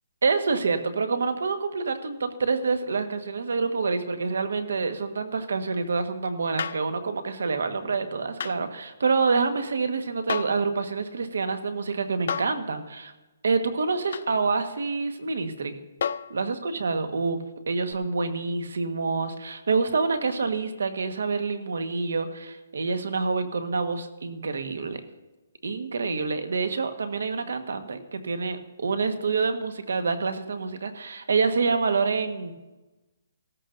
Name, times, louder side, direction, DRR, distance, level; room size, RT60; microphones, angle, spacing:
voice 1, 0.2-13.1 13.4-15.8 16.3-17.4 17.7-25.0 25.6-32.5, right 4 dB, 75° right, 8 dB, 1.4 m, -27 dB
sound 1, 6.6-6.9 8.4-8.6 10.3-10.6 12.3-12.6 14.1-14.3 16.0-16.4 17.9-18.0, left 7 dB, 55° left, 0.5 m, -31 dB
16.5 x 14.0 x 2.6 m, 1.1 s
hypercardioid pair, 165°, 0 cm